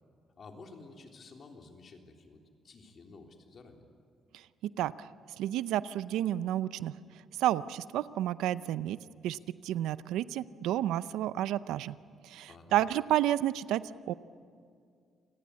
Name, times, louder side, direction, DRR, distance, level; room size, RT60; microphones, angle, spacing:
voice 1, 0.3-2.4 2.6-3.9 12.5-12.8, left 3 dB, 50° left, 2 dB, 3.6 m, -52 dB
voice 2, 5.4-6.9 7.4-9.0 9.2-11.9 12.2-14.1, right 12 dB, 90° right, 16 dB, 0.6 m, -31 dB
28.0 x 18.0 x 9.8 m, 2.3 s
cardioid pair, 90°, 0 cm